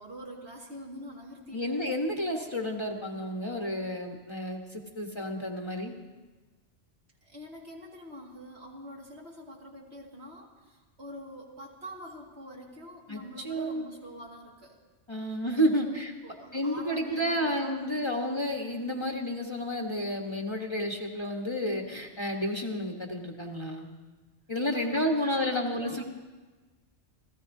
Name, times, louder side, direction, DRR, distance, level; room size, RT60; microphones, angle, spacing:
voice 1, 0.0-1.8 7.2-14.8 15.3-18.3 24.7-26.0, equal, 65° right, -2 dB, 2.4 m, -45 dB
voice 2, 1.5-5.9 13.1-13.8 15.1-16.1 16.5-23.9 24.5-26.0, equal, 25° left, 1 dB, 1.2 m, -31 dB
29.5 x 14.5 x 2.7 m, 1.3 s
omnidirectional pair, 1.2 m